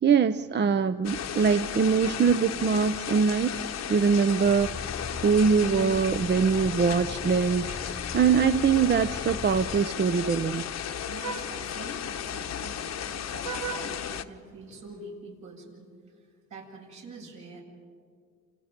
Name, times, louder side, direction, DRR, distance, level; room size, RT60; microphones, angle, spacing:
voice 1, 0.0-3.5 3.9-4.9 5.2-10.7, right 6 dB, 35° right, 11 dB, 0.7 m, -23 dB
sound 1, 1.0-14.2, left 9 dB, 60° left, 1.1 m, -35 dB
sound 2, 4.4-9.8, left 4 dB, 20° left, 1.1 m, -40 dB
Vehicle horn car horn honking, 7.0-15.1, right 6 dB, 55° right, 1.3 m, -44 dB
voice 2, 11.1-15.9 16.5-17.6, right 3 dB, 75° right, -2 dB, 7.8 m, -45 dB
29.0 x 28.5 x 5.3 m, 2.1 s
cardioid pair, 90°, 30 cm